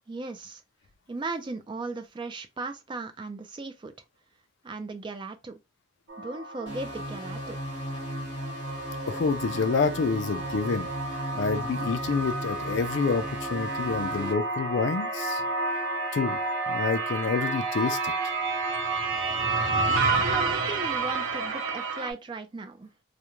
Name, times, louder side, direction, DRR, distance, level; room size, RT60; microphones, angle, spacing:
voice 1, 0.1-0.6 1.1-3.9 4.6-5.6 6.2-7.6 20.2-22.9, right 3 dB, 25° right, 0.3 m, -37 dB
sound 1, 6.1-22.1, right 3 dB, 75° right, 0.6 m, -30 dB
sound 2, 6.7-14.3, equal, 25° left, 0.9 m, -37 dB
voice 2, 9.1-10.9 11.3-15.4 16.1-16.4 16.7-18.1, left 4 dB, 60° left, 0.4 m, -28 dB
2.4 x 2.1 x 2.9 m
head